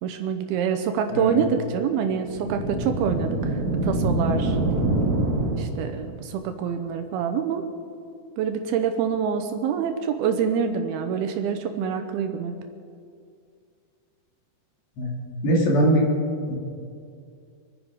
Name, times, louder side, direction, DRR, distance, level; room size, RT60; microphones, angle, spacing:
voice 1, 0.0-3.6 3.8-4.6 5.6-7.7 8.4-12.6, right 7 dB, 75° right, 7 dB, 2.5 m, -26 dB
voice 2, 1.1-1.4 15.0-15.2 15.4-16.1 16.5-16.6, right 1 dB, 80° left, -3 dB, 5.0 m, -21 dB
sound 1, 2.2-6.1, right 2 dB, 50° right, 2.8 m, -25 dB
25.5 x 10.0 x 5.0 m, 2.3 s
omnidirectional pair, 4.9 m